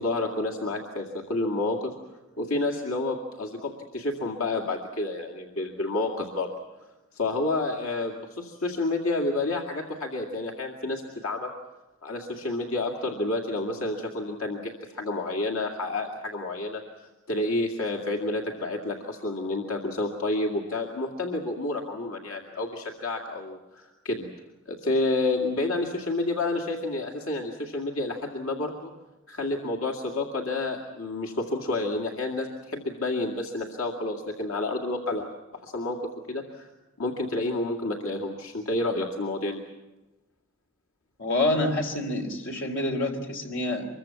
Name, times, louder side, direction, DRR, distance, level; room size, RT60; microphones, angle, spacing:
voice 1, 0.0-1.9 2.4-6.5 7.1-11.5 12.0-16.8 17.3-24.3 24.7-28.9 29.3-35.3 35.6-36.7 37.0-39.6, left 2 dB, 80° left, 1 dB, 2.2 m, -29 dB
voice 2, 41.2-43.9, left 1 dB, 60° left, 3 dB, 3.5 m, -27 dB
25.0 x 22.5 x 7.1 m, 1.0 s
head